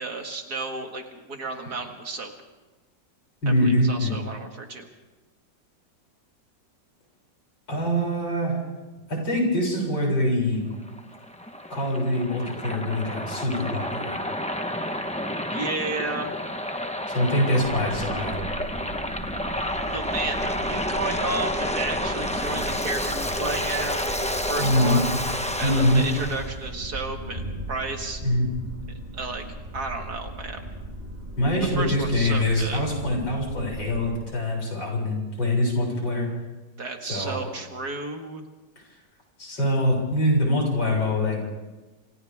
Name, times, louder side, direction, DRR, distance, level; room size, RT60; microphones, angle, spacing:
voice 1, 0.0-2.3 3.5-4.9 15.5-16.3 19.9-25.1 25.6-28.2 29.1-29.4 29.7-30.7 31.8-32.8 36.8-38.4, right 3 dB, 60° right, 3 dB, 2.6 m, -32 dB
voice 2, 3.4-4.1 7.7-8.6 9.1-10.6 11.7-14.2 17.1-18.3 24.6-25.0 25.6-26.1 28.2-28.5 31.4-36.3 37.1-37.4 39.4-41.4, left 1 dB, 80° left, -2 dB, 7.8 m, -24 dB
Waves surf, 10.7-26.5, left 1 dB, 5° left, 0.8 m, -30 dB
sound 1, 17.6-34.2, equal, 20° right, 3.6 m, -38 dB
28.0 x 27.0 x 3.6 m, 1.2 s
omnidirectional pair, 1.9 m